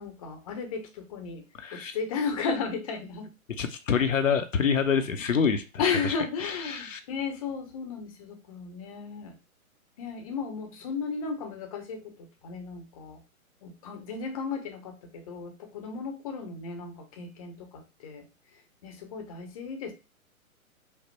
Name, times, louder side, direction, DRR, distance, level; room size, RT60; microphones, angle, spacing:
voice 1, 0.0-1.4 1.7-3.3 5.8-9.4 10.0-13.2 13.6-18.2 18.8-19.9, left 5 dB, 25° left, 4 dB, 0.8 m, -34 dB
voice 2, 1.6-2.0 3.6-7.0, left 6 dB, 60° left, 7 dB, 0.7 m, -27 dB
5.3 x 2.1 x 4.3 m, 0.28 s
figure-of-eight pair, 125°, 43 cm